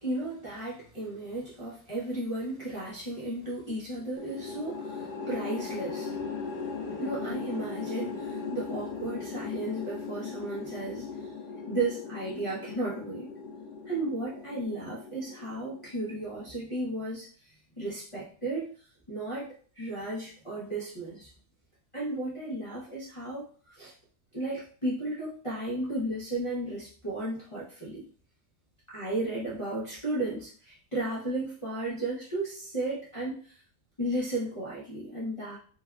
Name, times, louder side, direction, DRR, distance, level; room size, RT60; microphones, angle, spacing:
voice 1, 0.0-6.2 6.9-11.3 11.7-13.3 13.9-21.3 21.9-23.9 24.3-28.1 28.9-33.6 34.0-35.6, right 2 dB, 50° left, -8 dB, 0.3 m, -34 dB
sound 1, 4.2-16.5, left 4 dB, 85° left, 1.2 m, -38 dB
3.3 x 2.3 x 2.3 m, 0.42 s
omnidirectional pair, 1.7 m